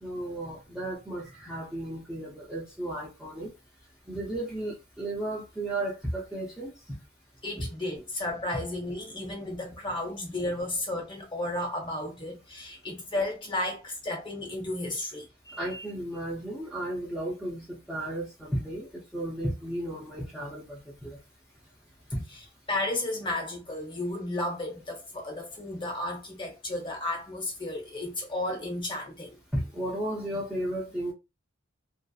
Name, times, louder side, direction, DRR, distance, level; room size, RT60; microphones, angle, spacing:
voice 1, 0.0-3.5 4.1-7.0 7.6-7.7 15.6-21.2 22.1-22.2 29.5-31.1, right 1 dB, ahead, 0.6 m, -34 dB
voice 2, 7.4-15.8 22.7-29.4, left 1 dB, 25° left, 0.9 m, -33 dB
2.7 x 2.0 x 2.3 m
head